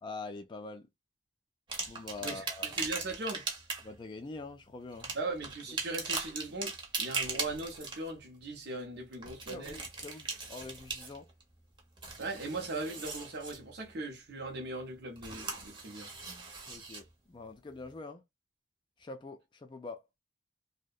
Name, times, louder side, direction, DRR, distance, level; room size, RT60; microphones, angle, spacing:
voice 1, 0.0-0.9 1.9-2.7 3.8-5.2 9.5-11.3 16.7-18.2 19.0-20.0, left 3 dB, 25° left, 0.3 m, -44 dB
sound 1, 1.7-3.9 4.9-8.1 9.1-11.4 11.8-13.6 15.2-17.0 17.8-17.9, right 4 dB, 25° right, 0.7 m, -39 dB
voice 2, 2.2-3.5 5.1-9.8 12.2-16.1, right 2 dB, 60° right, 0.6 m, -39 dB
2.7 x 2.0 x 2.3 m
head